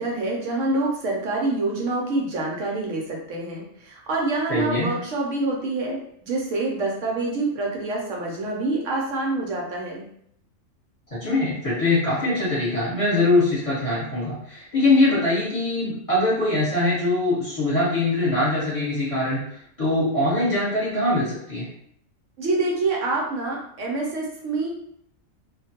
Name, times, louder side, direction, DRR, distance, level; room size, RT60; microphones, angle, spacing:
voice 1, 0.0-10.0 22.4-24.7, right 2 dB, 75° right, -2 dB, 0.9 m, -26 dB
voice 2, 4.5-4.9 11.2-19.4 19.8-21.7, left 2 dB, 25° left, -9 dB, 1.1 m, -22 dB
2.4 x 2.2 x 2.8 m, 0.67 s
omnidirectional pair, 1.4 m